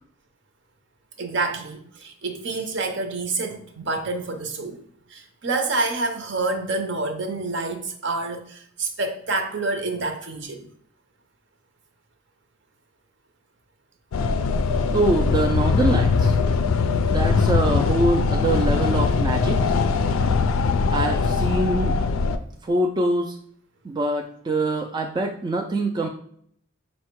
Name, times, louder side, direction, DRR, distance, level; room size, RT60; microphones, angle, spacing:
voice 1, 1.2-4.8 5.1-10.7 14.5-14.6, right 3 dB, 55° right, 5 dB, 0.7 m, -28 dB
sound 1, 14.1-22.4, left 4 dB, 80° left, 0.4 m, -21 dB
voice 2, 14.9-16.4 17.0-19.8 20.9-22.0 22.6-23.4 23.8-26.1, right 2 dB, 20° right, 2 dB, 0.3 m, -24 dB
5.4 x 2.1 x 4.5 m, 0.64 s
head